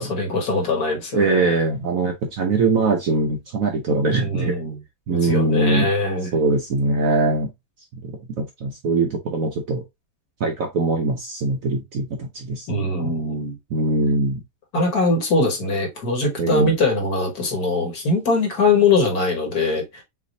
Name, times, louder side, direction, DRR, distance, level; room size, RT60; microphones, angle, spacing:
voice 1, 0.0-1.6 4.1-4.8 5.1-6.3 12.7-13.5 14.7-20.0, left 3 dB, 55° left, 1.9 m, -22 dB
voice 2, 1.1-4.5 5.1-5.9 6.3-7.5 7.9-9.8 10.4-13.1 13.7-14.4 16.4-16.7, right 3 dB, 60° right, 1.0 m, -22 dB
6.2 x 2.8 x 2.6 m
omnidirectional pair, 2.0 m